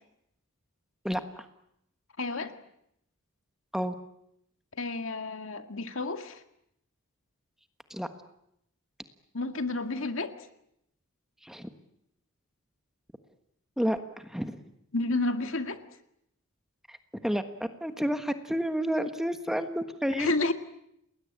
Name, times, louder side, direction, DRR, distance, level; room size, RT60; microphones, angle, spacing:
voice 1, 1.0-1.5 3.7-3.9 7.9-8.1 11.4-11.7 13.8-14.6 16.9-17.0 17.2-17.4 17.8-20.3, equal, ahead, 8 dB, 1.4 m, -30 dB
voice 2, 2.2-2.5 4.8-6.4 9.3-10.3 14.9-15.8 20.2-20.5, left 2 dB, 65° left, 7 dB, 2.0 m, -30 dB
29.5 x 20.5 x 8.9 m, 0.78 s
head